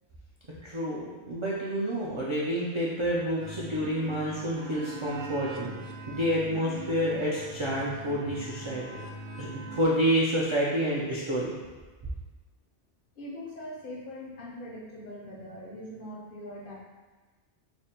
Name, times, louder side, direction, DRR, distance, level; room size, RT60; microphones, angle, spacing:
voice 1, 0.6-5.7 6.1-9.0 9.4-11.5, equal, 50° right, -6 dB, 0.3 m, -29 dB
sound 1, 3.4-9.9, right 2 dB, 85° right, 0.9 m, -41 dB
voice 2, 13.2-16.7, left 1 dB, 55° left, -3 dB, 0.7 m, -41 dB
3.4 x 2.1 x 4.2 m, 1.3 s
omnidirectional pair, 1.2 m